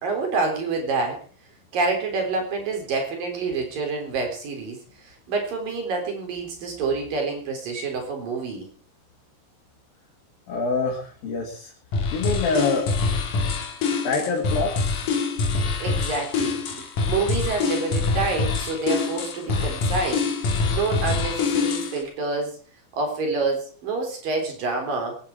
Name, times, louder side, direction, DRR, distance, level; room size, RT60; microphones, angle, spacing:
voice 1, 0.0-1.2 1.7-4.8 5.0-8.7 15.8-22.6 23.0-25.2, right 3 dB, 70° right, 2 dB, 5.4 m, -27 dB
voice 2, 10.5-11.7 12.1-13.0 14.0-15.0, left 4 dB, 80° left, -2 dB, 4.3 m, -26 dB
sound 1, 11.9-22.0, left 4 dB, 65° left, 3.5 m, -25 dB
22.5 x 9.8 x 4.8 m, 0.40 s
omnidirectional pair, 4.1 m